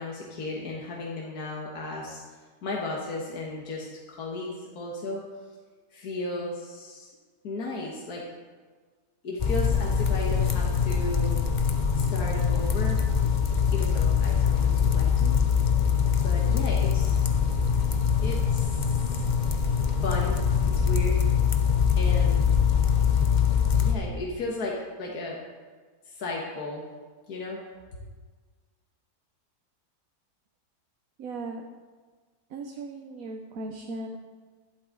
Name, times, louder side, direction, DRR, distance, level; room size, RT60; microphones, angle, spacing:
voice 1, 0.0-2.2 2.6-5.2 5.9-7.1 7.4-8.2 9.2-11.4 12.1-13.0 13.7-15.3 16.2-17.2 18.2-19.3 20.0-21.2 22.0-22.5 23.8-25.4 26.1-26.8 27.3-27.6, left 2 dB, 75° left, -2 dB, 1.9 m, -35 dB
sound 1, 9.4-23.9, left 7 dB, 40° left, 0.8 m, -23 dB
voice 2, 31.2-31.6 32.5-34.2, right 2 dB, 65° right, 4 dB, 1.2 m, -37 dB
12.0 x 11.5 x 3.9 m, 1.5 s
omnidirectional pair, 1.6 m